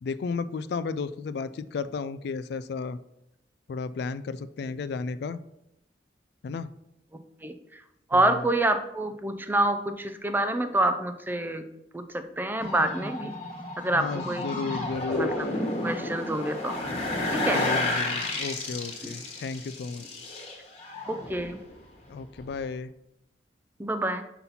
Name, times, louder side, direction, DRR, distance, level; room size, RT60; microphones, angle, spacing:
voice 1, 0.0-3.0 3.7-5.4 6.4-6.7 8.1-8.4 13.9-15.3 17.5-20.0 22.1-22.9, left 4 dB, 65° left, 14 dB, 0.3 m, -33 dB
voice 2, 8.1-11.6 11.9-13.3 13.8-14.5 15.1-15.5 15.8-16.7 17.3-17.7 19.0-19.1 21.1-21.6 23.8-24.2, right 1 dB, 10° right, 8 dB, 0.4 m, -27 dB
sound 1, 12.6-21.7 22.0-22.5, left 2 dB, 35° left, 1.4 m, -31 dB
5.8 x 4.0 x 5.5 m, 0.82 s
head